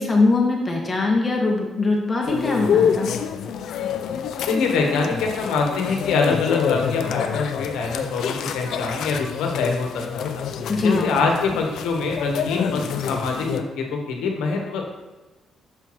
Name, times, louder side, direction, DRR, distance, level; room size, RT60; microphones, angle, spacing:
voice 1, 0.0-3.1 10.7-11.0, left 3 dB, 30° left, 0 dB, 1.4 m, -21 dB
sound 1, 2.2-13.6, left 7 dB, 75° left, 0.5 m, -27 dB
voice 2, 4.5-10.4 10.8-14.8, left 4 dB, 90° left, 2 dB, 1.2 m, -24 dB
6.7 x 5.8 x 3.1 m, 1.2 s
cardioid pair, 90°, 0 cm